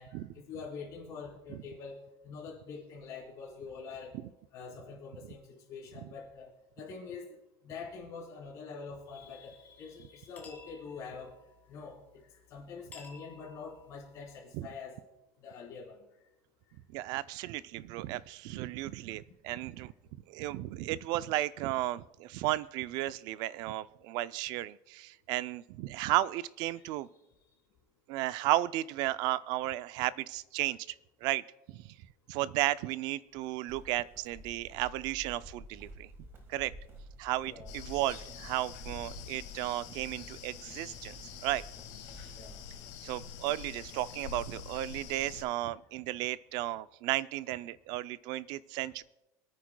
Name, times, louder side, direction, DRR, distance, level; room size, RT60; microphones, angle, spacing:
voice 1, 0.0-4.1 4.5-7.4 7.6-11.4 11.7-15.0 15.4-16.0 26.8-26.9 37.4-37.7 42.3-42.6, left 5 dB, 35° left, -3 dB, 3.7 m, -45 dB
sound 1, 9.0-14.4, left 4 dB, 15° left, 1.9 m, -57 dB
voice 2, 16.9-19.9 20.3-27.1 28.1-30.8 31.2-31.9 32.3-36.1 36.5-36.7 37.2-41.6 43.0-49.0, right 16 dB, 50° right, 17 dB, 0.4 m, -34 dB
sound 2, 33.7-42.7, right 1 dB, 25° right, 1.5 m, -51 dB
sound 3, 37.7-45.4, left 9 dB, 65° left, 1.9 m, -46 dB
26.0 x 9.3 x 2.2 m, 0.95 s
cardioid pair, 170°, 9 cm